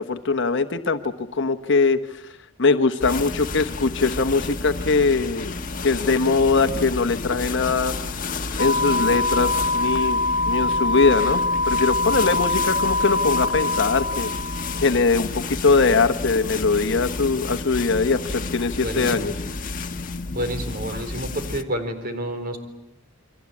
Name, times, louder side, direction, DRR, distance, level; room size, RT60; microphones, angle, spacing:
voice 1, 0.0-2.2 2.6-5.5 5.8-7.9 8.6-10.2 10.5-14.3 14.8-19.3, left 4 dB, 65° left, 8 dB, 1.2 m, -21 dB
sound 1, 3.0-21.6, left 3 dB, 45° left, 1.5 m, -31 dB
sound 2, 8.6-14.9, left 2 dB, 85° left, 0.9 m, -24 dB
voice 2, 18.8-19.3 20.3-22.6, right 1 dB, 45° right, 7 dB, 4.4 m, -29 dB
29.0 x 23.5 x 8.6 m, 0.90 s
head